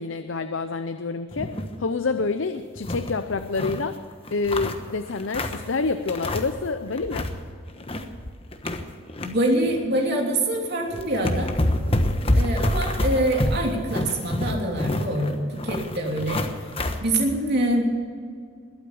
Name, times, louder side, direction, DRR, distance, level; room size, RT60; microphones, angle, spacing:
voice 1, 0.0-4.0 4.3-7.3, left 4 dB, 75° left, 9 dB, 0.7 m, -27 dB
sound 1, 1.3-1.8 2.1-2.2 2.6-3.8 4.2-5.7 6.1-6.7 6.9-7.4 7.7-9.3 9.7-9.9 10.6-10.7 10.9-17.0, left 1 dB, 30° left, 1.2 m, -27 dB
voice 2, 9.2-11.5 12.3-16.5 17.0-17.9, right 1 dB, 55° right, 0 dB, 3.1 m, -25 dB
21.0 x 8.7 x 7.0 m, 2.2 s
head